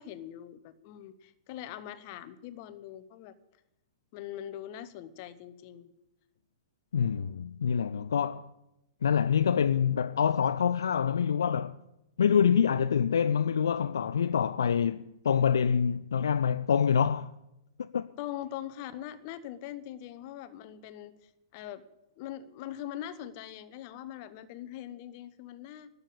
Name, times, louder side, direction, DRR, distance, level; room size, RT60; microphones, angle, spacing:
voice 1, 0.0-3.3 4.1-5.9 18.2-21.8 22.2-25.9, left 11 dB, 40° left, 0.9 m, -42 dB
voice 2, 6.9-8.5 9.0-11.8 12.2-17.3 17.8-18.1, left 7 dB, 65° left, 0.4 m, -26 dB
13.0 x 6.9 x 9.6 m
figure-of-eight pair, 105°, 2 cm